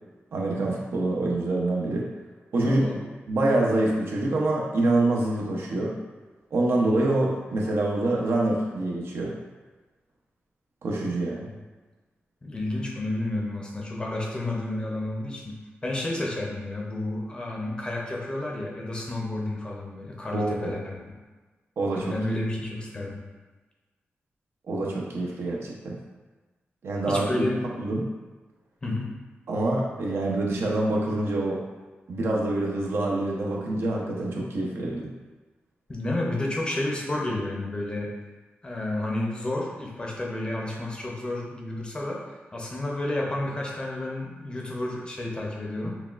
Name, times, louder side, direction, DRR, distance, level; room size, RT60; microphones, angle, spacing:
voice 1, 0.3-2.1 2.5-2.9 3.3-5.9 6.5-9.3 10.8-11.5 20.3-20.8 21.8-22.1 24.7-26.0 26.8-27.3 27.8-28.1 29.5-31.6 32.1-35.1, right 2 dB, 70° right, -2 dB, 0.6 m, -26 dB
voice 2, 2.6-3.1 11.5-11.6 12.4-20.9 21.9-23.2 27.1-27.7 28.8-29.1 35.9-38.1 38.6-42.2 42.5-46.0, left 1 dB, 25° left, -2 dB, 0.6 m, -31 dB
5.8 x 2.2 x 2.4 m, 1.3 s
wide cardioid pair, 170°, 4 cm